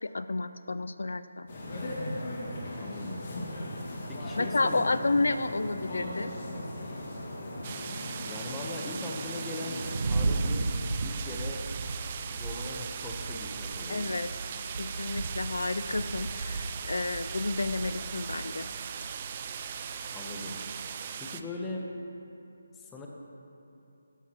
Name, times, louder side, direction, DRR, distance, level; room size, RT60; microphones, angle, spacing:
voice 1, 0.0-1.5 4.4-6.3 13.9-14.3 14.8-18.7, left 3 dB, 75° left, 12 dB, 0.4 m, -30 dB
sound 1, 1.5-10.0, left 1 dB, 40° left, 1.9 m, -38 dB
voice 2, 2.8-3.2 4.1-5.2 8.3-10.7 11.0-11.6 12.3-14.3 20.1-20.6 21.2-21.9 22.7-23.1, left 2 dB, 10° left, -1 dB, 0.9 m, -40 dB
sound 2, 7.6-21.4, right 7 dB, 30° right, 0.4 m, -39 dB
sound 3, 9.8-21.0, right 3 dB, 60° right, 0.9 m, -36 dB
14.0 x 11.5 x 3.0 m, 3.0 s
figure-of-eight pair, 165°, 0 cm